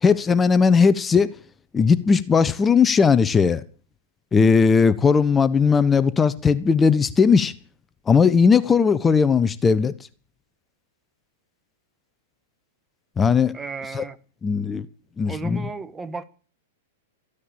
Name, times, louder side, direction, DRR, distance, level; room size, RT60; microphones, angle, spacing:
voice 1, 0.0-1.3 1.7-3.6 4.3-7.5 8.1-9.9 13.2-13.6 13.9-14.0 14.4-14.9 15.2-15.7, left 5 dB, 15° left, 0.9 m, -18 dB
voice 2, 13.5-14.2 15.3-16.2, right 4 dB, 15° right, 1.4 m, -34 dB
14.5 x 10.0 x 8.8 m
hypercardioid pair, 115°, 0 cm